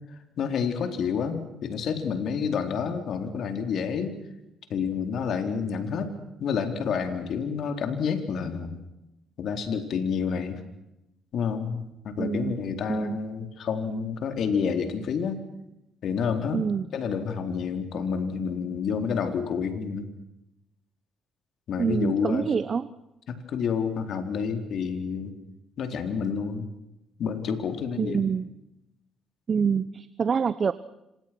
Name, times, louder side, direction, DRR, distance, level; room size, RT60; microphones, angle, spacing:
voice 1, 0.4-4.2 4.7-6.1 6.4-8.8 9.4-10.6 11.3-15.4 16.0-16.6 16.9-20.1 21.7-22.5 23.3-25.3 25.8-26.7 27.2-28.3, left 6 dB, 65° left, 7 dB, 4.2 m, -29 dB
voice 2, 12.2-13.2 16.5-16.9 21.8-22.9 28.0-28.5 29.5-30.7, right 6 dB, 40° right, 15 dB, 1.0 m, -26 dB
27.5 x 26.0 x 6.2 m, 0.90 s
cardioid pair, 95°, 0 cm